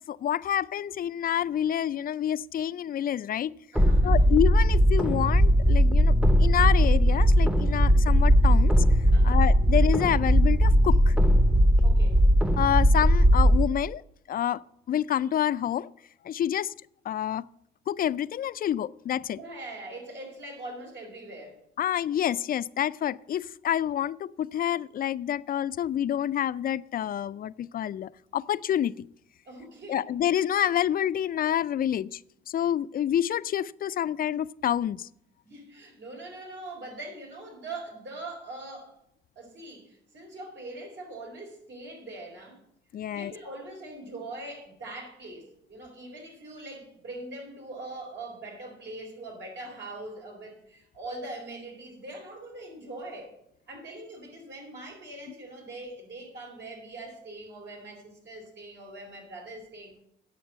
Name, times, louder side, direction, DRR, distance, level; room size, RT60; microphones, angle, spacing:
voice 1, 0.1-3.5 4.0-6.1 6.4-8.8 9.2-11.2 12.6-14.0 14.3-14.6 14.9-15.9 16.2-16.7 17.1-17.5 17.9-19.4 21.8-28.9 29.9-32.2 32.5-35.1 42.9-43.3, left 10 dB, 45° left, 0.4 m, -28 dB
voice 2, 3.7-4.5 9.1-9.5 11.8-12.2 19.3-21.6 29.5-30.1 35.4-38.9 39.4-42.6 43.1-53.3 53.7-59.9, right 2 dB, 65° right, 4.3 m, -42 dB
sound 1, 3.8-13.6, equal, 5° right, 0.7 m, -19 dB
8.8 x 7.0 x 8.0 m
cardioid pair, 90°, 20 cm